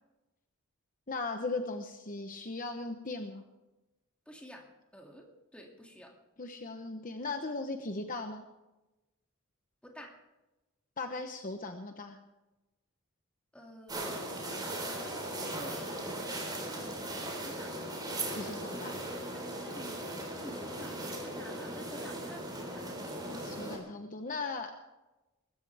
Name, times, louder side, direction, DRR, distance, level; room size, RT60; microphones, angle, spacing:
voice 1, 1.1-3.4 6.4-8.4 11.0-12.2 18.4-18.9 23.3-24.7, left 3 dB, 40° left, 6 dB, 0.9 m, -38 dB
voice 2, 4.3-4.6 4.9-5.3 5.5-6.1 9.8-10.1 13.5-14.3 15.5-17.8 19.3-20.0 20.3-22.9, equal, 5° left, 0 dB, 2.5 m, -50 dB
sound 1, 13.9-23.8, right 1 dB, 20° right, 3.9 m, -38 dB
23.0 x 13.5 x 3.5 m, 1.0 s
head